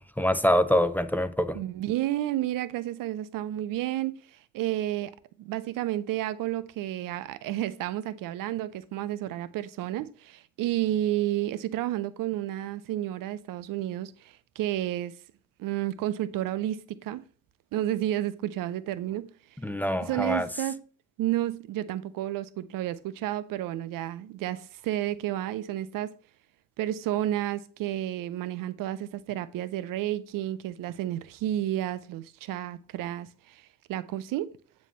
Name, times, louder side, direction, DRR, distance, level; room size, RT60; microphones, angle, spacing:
voice 1, 0.2-1.6 19.6-20.5, equal, 5° left, 0.7 m, -24 dB
voice 2, 1.5-5.1 5.4-15.1 15.6-17.2 17.7-19.3 20.0-20.8 21.2-26.1 26.8-34.5, right 13 dB, 65° right, 0.6 m, -31 dB
9.0 x 3.2 x 5.5 m
hypercardioid pair, 50°, 36 cm